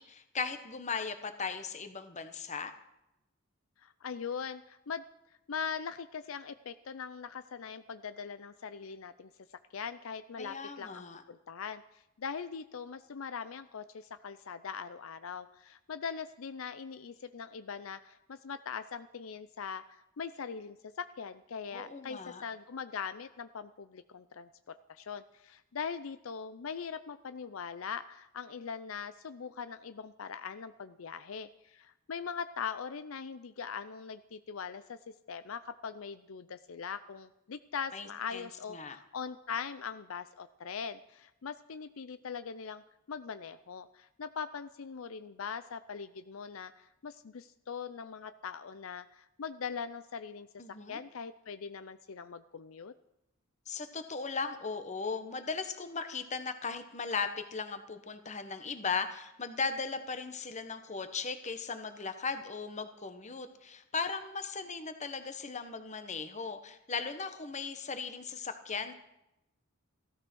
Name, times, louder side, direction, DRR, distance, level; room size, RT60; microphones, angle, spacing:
voice 1, 0.0-2.7 10.4-11.2 21.7-22.4 37.9-39.0 50.6-51.0 53.7-68.9, left 5 dB, 35° left, 9 dB, 1.3 m, -37 dB
voice 2, 3.8-5.0 5.5-9.3 9.7-11.8 12.2-35.0 35.3-42.8 43.1-50.5 50.9-52.9, left 6 dB, 75° left, 12 dB, 0.5 m, -41 dB
16.0 x 13.0 x 6.2 m, 0.87 s
head